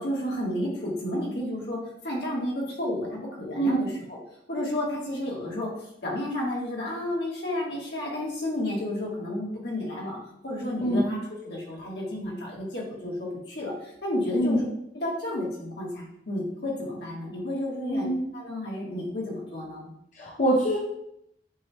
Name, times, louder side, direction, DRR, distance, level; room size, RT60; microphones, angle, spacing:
voice 1, 0.0-4.2 4.5-14.7 14.9-18.1 18.3-19.9, left 1 dB, 65° left, -3 dB, 1.4 m, -31 dB
voice 2, 17.9-18.3 20.2-20.8, right 1 dB, 40° left, -4 dB, 0.6 m, -24 dB
7.4 x 3.1 x 2.2 m, 0.77 s
head